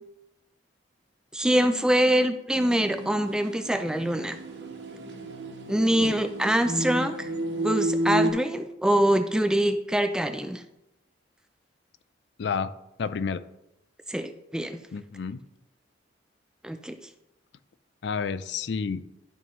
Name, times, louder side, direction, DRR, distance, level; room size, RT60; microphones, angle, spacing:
voice 1, 1.3-4.4 5.7-7.3 7.6-10.6 14.1-14.8 16.6-17.0, right 1 dB, 5° right, 8 dB, 0.3 m, -24 dB
sound 1, 2.5-8.3, right 1 dB, 70° right, 1.3 m, -31 dB
voice 2, 12.4-12.7 13.0-13.4 14.9-15.4 18.0-19.0, left 5 dB, 65° left, 13 dB, 0.4 m, -30 dB
12.0 x 5.4 x 3.1 m, 0.88 s
head